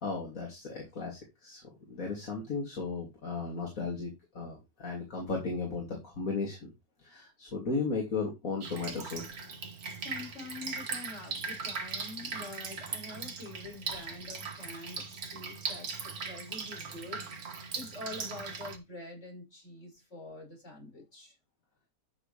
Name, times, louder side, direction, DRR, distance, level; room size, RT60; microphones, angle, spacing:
voice 1, 0.0-6.7 7.0-9.2, left 4 dB, 65° left, -1 dB, 3.3 m, -35 dB
Drip, 8.6-18.8, right 5 dB, 80° right, 2.0 m, -39 dB
voice 2, 9.8-21.4, left 2 dB, 50° left, 0 dB, 5.8 m, -46 dB
13.0 x 6.6 x 3.4 m, 0.23 s
omnidirectional pair, 1.5 m